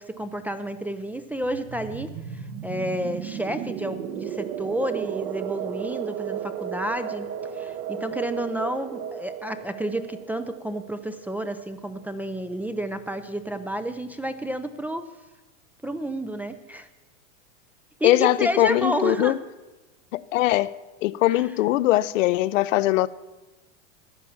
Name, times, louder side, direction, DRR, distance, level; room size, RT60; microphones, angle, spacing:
voice 1, 0.0-7.3 7.5-15.1 15.8-16.9 18.0-19.3 21.3-21.5, right 1 dB, 5° right, 7 dB, 0.4 m, -30 dB
sound 1, 1.4-11.9, right 9 dB, 55° right, 1.3 m, -34 dB
voice 2, 18.0-19.3 20.1-20.7 21.0-23.1, left 15 dB, 75° left, 16 dB, 0.7 m, -21 dB
14.5 x 9.8 x 7.1 m, 1.1 s
supercardioid pair, 125°, 39 cm